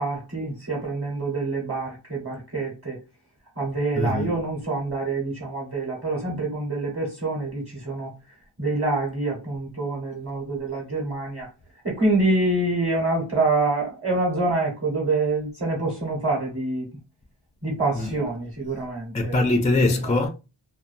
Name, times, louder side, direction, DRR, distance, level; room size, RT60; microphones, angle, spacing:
voice 1, 0.0-3.0 3.6-8.1 8.6-11.5 11.8-16.9 17.6-19.4 20.0-20.2, right 2 dB, 30° right, 1.0 m, -26 dB
voice 2, 4.0-4.4 17.9-18.1 19.1-20.3, left 2 dB, 20° left, 0.3 m, -22 dB
2.6 x 2.2 x 2.5 m
wide cardioid pair, 90°, 47 cm